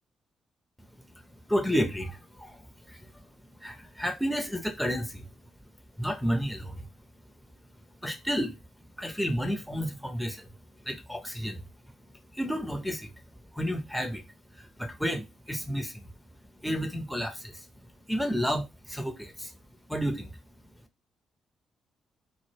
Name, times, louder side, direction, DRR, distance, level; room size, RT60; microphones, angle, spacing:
voice 1, 1.2-3.3 3.6-5.3 6.0-6.9 8.0-10.5 10.8-11.6 12.0-13.1 13.5-16.1 16.6-17.7 18.1-19.5 19.9-20.4, equal, ahead, 0.6 m, -32 dB
2.0 x 2.0 x 3.3 m
hypercardioid pair, 45°, 0 cm